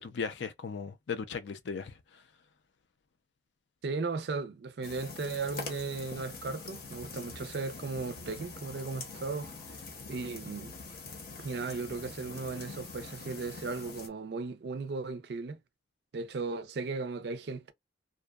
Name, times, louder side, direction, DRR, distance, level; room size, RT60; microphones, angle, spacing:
voice 1, 0.0-2.2, left 5 dB, 70° left, 0.4 m, -37 dB
voice 2, 3.8-9.5 10.1-10.7 11.4-15.6 16.1-17.7, right 4 dB, 60° right, 0.4 m, -36 dB
sound 1, 4.8-14.1, left 4 dB, 50° left, 0.7 m, -44 dB
sound 2, 6.7-12.8, equal, 5° left, 0.7 m, -56 dB
2.6 x 2.1 x 2.3 m
head